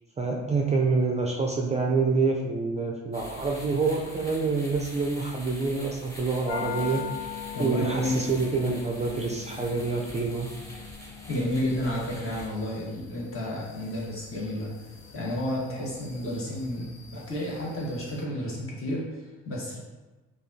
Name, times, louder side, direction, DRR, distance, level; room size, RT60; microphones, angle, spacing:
voice 1, 0.2-10.5, right 4 dB, 25° right, 0 dB, 0.4 m, -27 dB
sound 1, 3.1-12.5, equal, 10° left, 0.9 m, -45 dB
sound 2, 6.5-18.3, left 8 dB, 65° left, 0.6 m, -42 dB
voice 2, 7.5-8.3 11.3-14.7 15.1-19.8, left 1 dB, 45° left, -4 dB, 1.3 m, -31 dB
4.8 x 2.4 x 2.7 m, 1.2 s
cardioid pair, 90°, 30 cm